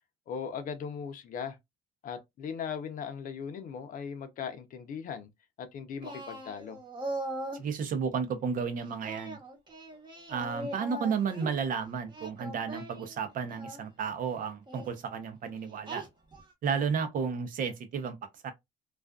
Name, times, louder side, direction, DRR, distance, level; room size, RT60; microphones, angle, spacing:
voice 1, 0.3-1.6 2.0-5.3 5.6-6.8, left 7 dB, 55° left, 0.6 m, -38 dB
Singing, 6.0-7.7 9.1-11.6 12.1-13.8 14.7-14.9 15.9-16.5, right 1 dB, 25° right, 1.0 m, -40 dB
voice 2, 7.5-9.4 10.3-16.0 16.6-18.5, right 6 dB, 55° right, 0.6 m, -32 dB
2.4 x 2.3 x 2.3 m
cardioid pair, 110°, 17 cm